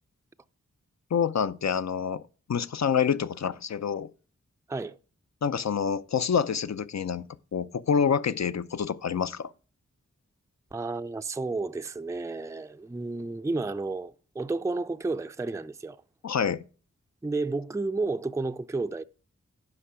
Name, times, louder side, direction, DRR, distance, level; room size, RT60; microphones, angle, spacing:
voice 1, 1.1-2.2 2.5-4.1 5.4-9.5 16.2-16.6, left 7 dB, 65° left, 0.6 m, -27 dB
voice 2, 10.7-16.0 17.2-19.0, right 3 dB, 10° right, 0.4 m, -31 dB
9.9 x 5.9 x 5.0 m
wide cardioid pair, 55°, 30 cm